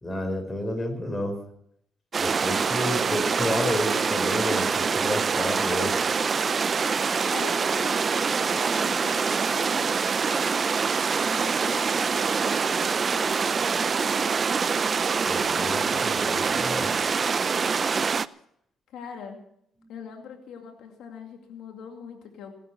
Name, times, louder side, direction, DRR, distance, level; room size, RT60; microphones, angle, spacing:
voice 1, 0.0-1.4 2.2-6.0 15.2-16.9, left 1 dB, 20° left, 6 dB, 5.1 m, -30 dB
sound 1, 2.1-18.3, right 5 dB, 40° right, 0.6 m, -25 dB
voice 2, 7.3-10.1 11.2-14.0 18.9-19.4 19.9-22.6, left 6 dB, 80° left, 3 dB, 2.4 m, -42 dB
17.5 x 12.5 x 6.0 m, 0.70 s
cardioid pair, 90°, 0 cm